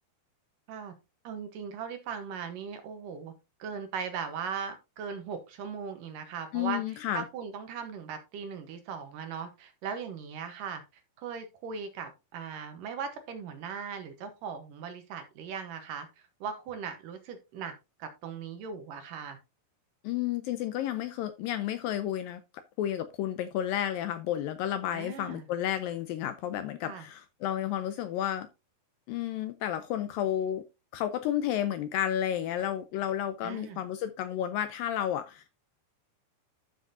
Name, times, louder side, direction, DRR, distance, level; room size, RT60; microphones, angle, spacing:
voice 1, 1.2-3.3 3.6-10.8 11.2-17.7 18.0-19.4 24.9-25.5 26.8-27.1 33.4-33.8, right 6 dB, 70° right, 7 dB, 2.4 m, -39 dB
voice 2, 6.5-7.3 20.0-28.5 29.1-30.6 30.9-35.7, left 11 dB, 80° left, 10 dB, 2.1 m, -32 dB
12.5 x 6.2 x 2.6 m, 0.25 s
omnidirectional pair, 4.6 m